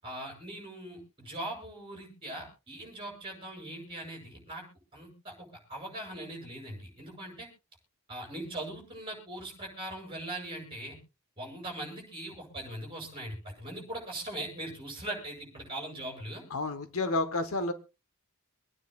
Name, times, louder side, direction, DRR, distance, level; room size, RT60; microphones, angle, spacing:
voice 1, 0.0-4.6 4.9-7.5 8.1-11.0 11.4-16.4, right 1 dB, 25° right, -2 dB, 7.0 m, -40 dB
voice 2, 16.5-17.7, left 2 dB, 70° left, 10 dB, 1.1 m, -30 dB
26.0 x 9.5 x 2.4 m, 0.29 s
head